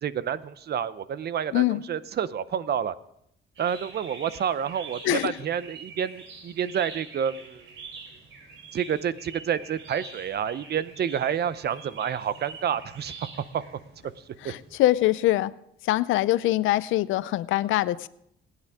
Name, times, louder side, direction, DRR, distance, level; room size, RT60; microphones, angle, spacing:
voice 1, 0.0-2.9 3.6-7.6 8.7-13.1 13.5-13.6 14.3-14.5, right 8 dB, 55° right, 16 dB, 0.7 m, -29 dB
sound 1, 3.6-15.0, right 4 dB, 75° right, 3.6 m, -45 dB
voice 2, 14.4-15.5 15.8-18.1, left 15 dB, 85° left, 18 dB, 0.5 m, -23 dB
22.0 x 9.5 x 3.6 m, 0.74 s
cardioid pair, 90°, 20 cm